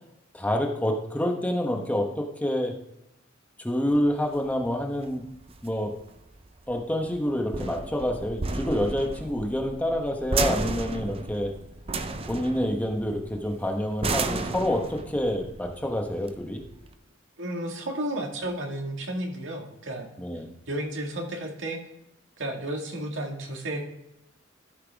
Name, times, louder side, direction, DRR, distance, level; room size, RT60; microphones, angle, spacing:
voice 1, 0.3-2.7 3.6-5.3 5.6-5.9 6.7-11.5 12.3-16.6 20.2-20.5, left 1 dB, 10° left, 2 dB, 1.1 m, -27 dB
sound 1, 3.9-16.9, right 3 dB, 30° right, 0.5 m, -34 dB
voice 2, 17.4-20.2 20.7-21.8 22.4-23.8, right 1 dB, 80° right, 1 dB, 1.9 m, -32 dB
13.5 x 5.9 x 3.5 m, 0.85 s
head